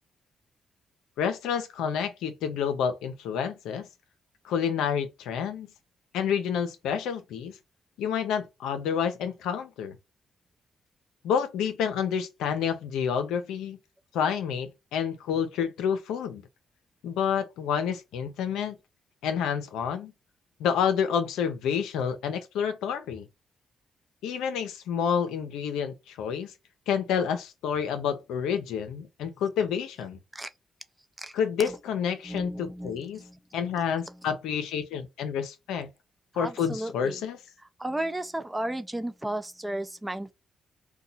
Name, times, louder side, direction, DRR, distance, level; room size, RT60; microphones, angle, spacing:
voice 1, 1.2-3.9 4.4-5.7 6.1-7.6 8.0-10.0 11.2-13.8 14.1-16.4 17.0-18.8 19.2-20.1 20.6-23.3 24.2-26.5 26.9-30.2 31.3-33.2 33.5-35.9 36.4-37.4, left 7 dB, 85° left, 0.6 m, -29 dB
voice 2, 32.2-33.4 33.7-34.1 36.3-37.2 37.8-40.3, right 1 dB, 15° right, 0.6 m, -34 dB
2.7 x 2.2 x 3.9 m
supercardioid pair, 60°, 0 cm